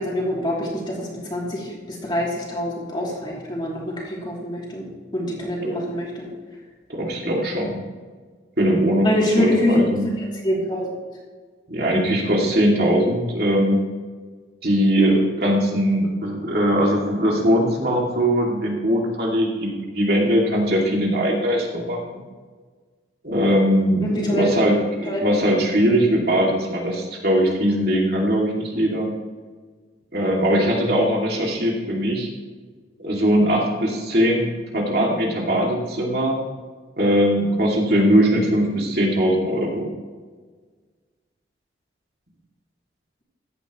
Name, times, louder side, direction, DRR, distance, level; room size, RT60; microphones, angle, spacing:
voice 1, 0.0-4.8 5.1-6.3 9.0-9.8 10.2-10.9 24.0-24.5 25.1-25.2, left 1 dB, 25° left, -4 dB, 3.1 m, -25 dB
voice 2, 6.9-7.8 8.6-9.1 9.4-10.1 11.7-13.8 14.6-22.2 23.2-29.1 30.1-32.3 33.0-34.5 34.7-36.4 37.0-39.9, equal, 55° right, -2 dB, 2.6 m, -20 dB
15.0 x 11.5 x 3.2 m, 1.5 s
head